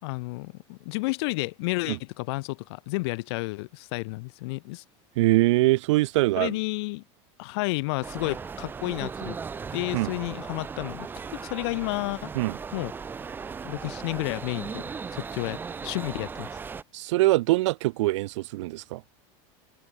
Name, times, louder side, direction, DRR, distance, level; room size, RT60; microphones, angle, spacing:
voice 1, 0.0-4.8 6.4-7.0 7.4-9.4 9.7-12.3 12.7-12.9 13.6-14.8 15.1-16.6, left 25 dB, 60° left, 6.1 m, -31 dB
voice 2, 5.2-6.6 9.9-10.1 12.3-12.6 16.9-19.0, right 19 dB, 80° right, 6.0 m, -23 dB
sound 1, 8.0-16.8, right 5 dB, 15° right, 2.5 m, -37 dB
cardioid pair, 175°, 15 cm